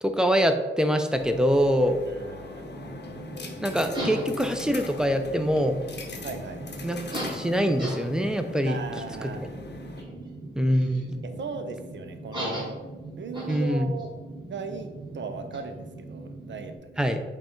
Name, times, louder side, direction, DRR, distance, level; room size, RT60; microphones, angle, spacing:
voice 1, 0.0-2.0 3.6-5.8 6.8-7.0 7.3-8.8 9.2-9.3 10.6-11.2 13.5-13.9 17.0-17.2, equal, 5° right, 6 dB, 0.5 m, -24 dB
sound 1, 1.1-10.0, left 3 dB, 60° left, 0.7 m, -41 dB
voice 2, 2.1-2.7 6.2-6.6 8.7-9.4 11.2-12.8 13.2-14.1 14.5-17.1, right 4 dB, 70° right, 7 dB, 0.5 m, -37 dB
sound 2, 2.5-16.8, right 1 dB, 20° right, 1.5 m, -38 dB
5.2 x 2.3 x 4.4 m, 1.2 s
cardioid pair, 70°, 20 cm